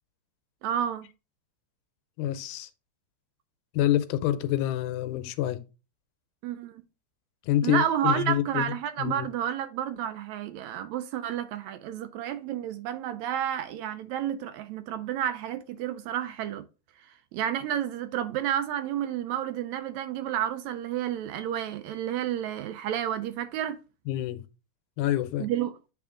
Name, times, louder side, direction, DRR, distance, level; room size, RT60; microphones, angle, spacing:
voice 1, 0.6-1.1 6.4-6.8 7.6-16.6 17.0-23.8 25.4-25.8, right 10 dB, 80° right, 1.7 m, -31 dB
voice 2, 2.2-2.7 3.7-5.6 7.5-8.6 9.0-9.3 24.1-24.4 25.0-25.5, left 12 dB, 85° left, 2.1 m, -27 dB
8.5 x 3.5 x 3.7 m
omnidirectional pair, 3.5 m